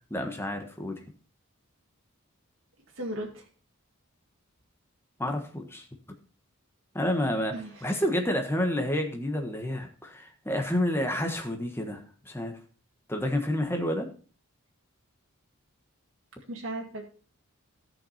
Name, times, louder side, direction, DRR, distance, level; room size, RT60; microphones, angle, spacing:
voice 1, 0.1-1.0 5.2-5.9 6.9-7.5 7.8-12.6 13.1-14.1, left 1 dB, 10° left, 4 dB, 1.3 m, -29 dB
voice 2, 3.0-3.4 7.5-7.7 16.5-17.0, right 1 dB, 60° right, -1 dB, 2.0 m, -35 dB
13.5 x 6.0 x 4.2 m, 0.40 s
head